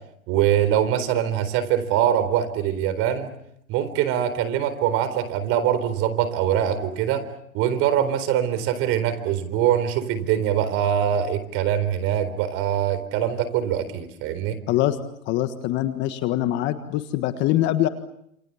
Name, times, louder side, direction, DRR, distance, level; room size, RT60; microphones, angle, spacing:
voice 1, 0.3-3.3 3.7-7.3 7.5-14.6, right 10 dB, 30° right, 13 dB, 4.1 m, -23 dB
voice 2, 15.3-17.9, left 14 dB, 25° left, 9 dB, 1.6 m, -23 dB
28.5 x 28.0 x 7.1 m, 0.76 s
hypercardioid pair, 140°, 41 cm